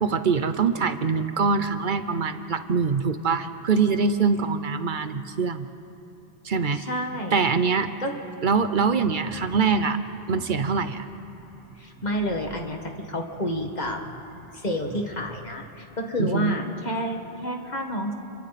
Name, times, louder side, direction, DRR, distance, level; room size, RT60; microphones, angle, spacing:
voice 1, 0.0-5.7 6.4-6.8 7.3-7.9 8.4-10.0 10.3-11.1 16.2-16.6, right 5 dB, 55° right, 10 dB, 1.0 m, -24 dB
voice 2, 6.7-7.4 8.0-8.1 11.8-12.8 13.1-14.0 14.5-18.1, equal, 45° left, 2 dB, 2.0 m, -29 dB
sound 1, 8.7-15.5, right 1 dB, ahead, 4.0 m, -46 dB
29.5 x 23.5 x 4.2 m, 2.7 s
omnidirectional pair, 1.0 m